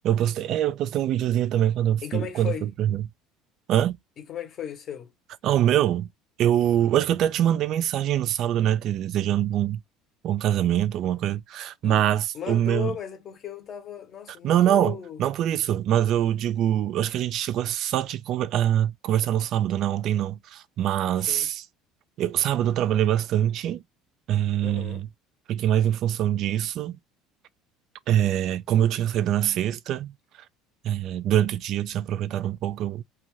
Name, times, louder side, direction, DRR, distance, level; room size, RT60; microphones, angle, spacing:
voice 1, 0.0-3.0 3.7-4.0 5.4-6.1 6.4-9.8 10.2-12.9 14.4-21.6 22.2-23.8 24.3-25.1 25.5-27.0 28.1-30.1 30.8-33.0, right 11 dB, 45° right, 0.3 m, -24 dB
voice 2, 2.0-2.7 4.2-5.1 11.8-12.1 12.3-15.2 21.3-21.5 24.6-25.0, left 9 dB, 30° left, 0.7 m, -35 dB
2.6 x 2.2 x 2.9 m
cardioid pair, 165°, 0 cm